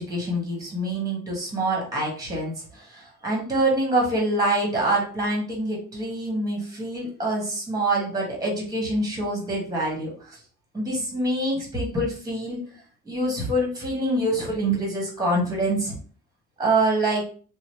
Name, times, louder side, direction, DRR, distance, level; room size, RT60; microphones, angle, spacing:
voice 1, 0.0-10.4 10.7-12.6 13.0-15.9 16.6-17.2, right 1 dB, 10° right, -2 dB, 1.3 m, -25 dB
2.9 x 2.0 x 3.0 m, 0.42 s
cardioid pair, 90°, 30 cm